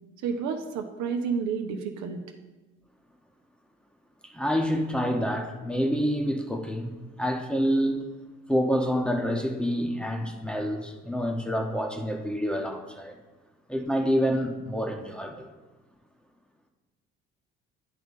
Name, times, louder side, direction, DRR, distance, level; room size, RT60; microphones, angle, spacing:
voice 1, 0.2-2.2, right 6 dB, 55° right, 4 dB, 0.8 m, -30 dB
voice 2, 4.2-8.0 8.5-13.1 13.7-15.5, equal, 5° left, 2 dB, 1.1 m, -27 dB
10.0 x 3.6 x 5.3 m, 1.2 s
figure-of-eight pair, 50°, 34 cm